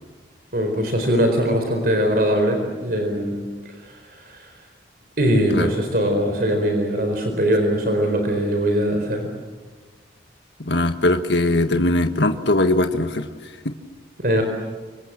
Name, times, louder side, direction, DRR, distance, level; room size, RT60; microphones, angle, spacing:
voice 1, 0.5-4.5 5.2-9.3 14.2-14.4, equal, 55° right, 4 dB, 4.5 m, -21 dB
voice 2, 10.7-13.3, left 2 dB, 80° left, 6 dB, 1.6 m, -20 dB
28.5 x 26.5 x 7.6 m, 1.5 s
head